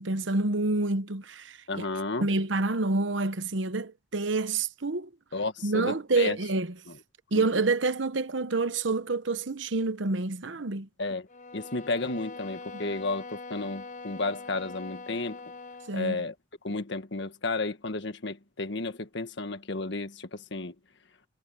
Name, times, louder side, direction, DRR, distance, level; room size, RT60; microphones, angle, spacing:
voice 1, 0.0-1.8 2.2-5.1 5.6-6.7 7.3-10.9 12.7-12.8 15.9-16.2, right 3 dB, 70° right, 1.0 m, -28 dB
voice 2, 1.7-2.3 5.3-6.4 7.4-7.5 11.0-11.3 11.5-15.4 15.9-16.3 16.6-20.7, left 3 dB, 65° left, 1.6 m, -32 dB
sound 1, 11.3-16.0, left 3 dB, 40° left, 0.7 m, -43 dB
head